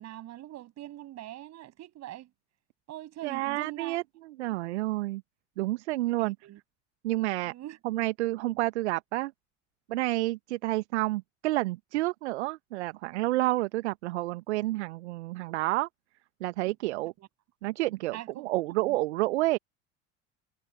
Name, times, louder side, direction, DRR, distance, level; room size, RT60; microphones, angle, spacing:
voice 1, 0.0-2.3 2.9-4.0 6.2-6.6 7.5-7.8 16.7-16.8 17.2-17.3 18.1-19.0, right 14 dB, 45° right, 7.5 m, -43 dB
voice 2, 3.2-5.2 5.6-6.3 7.0-7.5 7.8-9.3 9.9-15.9 16.4-17.1 17.6-19.6, right 18 dB, 65° right, 1.4 m, -29 dB
figure-of-eight pair, 65°, 37 cm